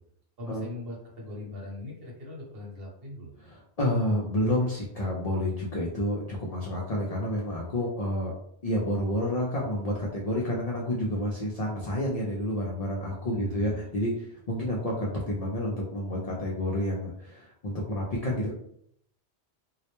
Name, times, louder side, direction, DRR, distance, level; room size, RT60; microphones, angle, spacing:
voice 1, 0.4-3.3 13.3-13.9, left 1 dB, 60° right, -3 dB, 1.0 m, -40 dB
voice 2, 3.4-8.3 8.6-18.5, left 1 dB, 55° left, -4 dB, 0.4 m, -29 dB
2.3 x 2.0 x 2.9 m, 0.69 s
omnidirectional pair, 1.2 m